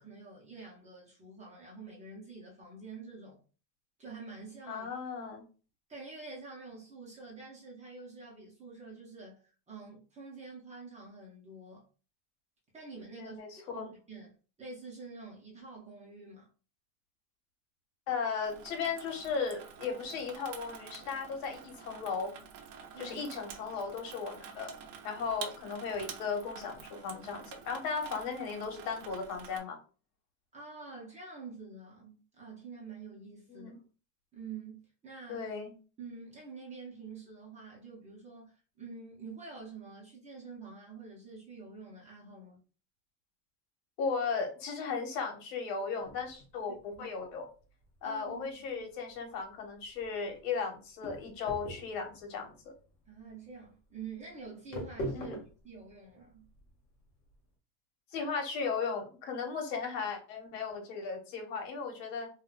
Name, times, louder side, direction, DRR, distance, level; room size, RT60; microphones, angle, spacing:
voice 1, 0.0-3.4 4.0-4.9 5.9-11.9 12.7-16.5 22.9-23.2 30.5-33.7 34.3-35.5 36.0-42.6 47.0-47.1 48.0-48.8 53.1-56.5, right 4 dB, 15° right, 0.6 m, -47 dB
voice 2, 4.7-5.4 13.1-13.9 18.1-22.3 23.0-24.7 25.0-29.8 33.5-33.8 35.3-35.7 44.0-47.5 48.0-52.5 55.1-55.4 58.1-62.3, left 5 dB, 75° left, 1.4 m, -36 dB
Water tap faucet / Sink (filling or washing), 18.4-29.6, right 7 dB, 60° right, 0.8 m, -48 dB
sound 1, 46.0-57.4, equal, 20° left, 0.3 m, -45 dB
4.7 x 2.3 x 2.4 m
cardioid pair, 170°, 50 cm